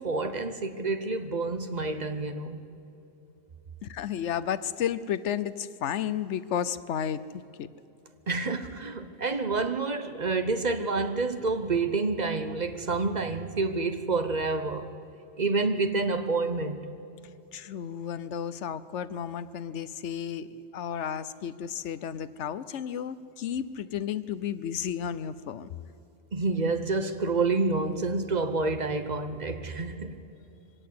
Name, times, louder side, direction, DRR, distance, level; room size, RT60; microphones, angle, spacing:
voice 1, 0.0-2.6 8.3-14.9 15.4-16.8 26.3-30.2, right 3 dB, 40° right, 1.1 m, -28 dB
voice 2, 3.8-7.7 17.5-25.7, left 9 dB, 90° left, 1.1 m, -33 dB
23.5 x 17.5 x 8.6 m
omnidirectional pair, 1.2 m